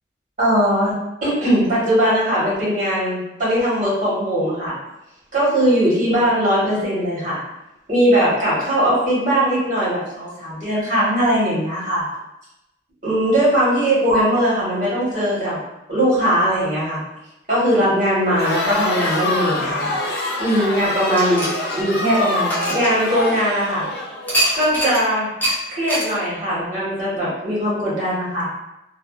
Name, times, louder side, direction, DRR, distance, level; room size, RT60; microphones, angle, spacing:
voice 1, 0.4-0.9 1.2-4.7 5.3-7.4 7.9-12.0 13.0-15.6 15.9-17.0 17.5-19.9 20.4-21.5 21.7-23.8 24.5-25.3 25.7-28.5, equal, 45° right, -8 dB, 1.2 m, -19 dB
Crowd, 18.3-24.5, left 2 dB, 60° left, 0.5 m, -25 dB
sound 1, 21.1-23.5 24.3-25.0 25.4-25.6 25.9-26.1, right 1 dB, 10° left, 0.5 m, -24 dB
2.5 x 2.1 x 2.3 m, 0.90 s
head